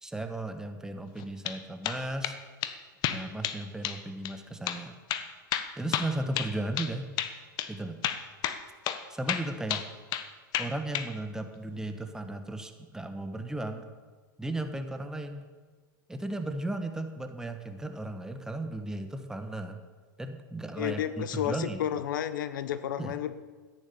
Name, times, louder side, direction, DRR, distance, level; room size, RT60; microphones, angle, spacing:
voice 1, 0.0-2.4 3.1-5.0 5.8-7.1 7.7-8.0 9.1-9.8 10.6-13.8 14.4-15.5 16.1-19.8 20.2-21.9 23.0-23.2, right 2 dB, 5° right, 7 dB, 1.5 m, -35 dB
sound 1, 1.2-1.6 1.8-2.4 2.6-2.7 3.0-3.6 3.8-4.0 4.3-4.4 4.7-4.8 5.1-6.9 7.2-7.3 7.6-7.7 8.0-8.6 8.9-9.0 9.3-10.3 10.5-11.1, left 11 dB, 40° left, 1.2 m, -31 dB
voice 2, 20.8-23.3, left 10 dB, 70° left, 13 dB, 1.0 m, -31 dB
14.0 x 10.0 x 7.2 m, 1.4 s
hypercardioid pair, 115°, 11 cm